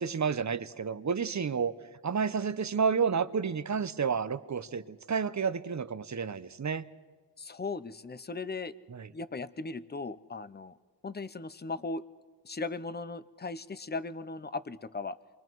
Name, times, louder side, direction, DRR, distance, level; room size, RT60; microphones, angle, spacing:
voice 1, 0.0-1.7 2.0-6.8 8.9-9.1, right 6 dB, 40° right, 14 dB, 0.8 m, -30 dB
voice 2, 7.4-8.7 9.1-10.8 11.0-12.0 12.4-15.2, left 3 dB, 25° left, 15 dB, 0.7 m, -37 dB
28.0 x 23.0 x 4.7 m, 1.5 s
wide cardioid pair, 80°, 42 cm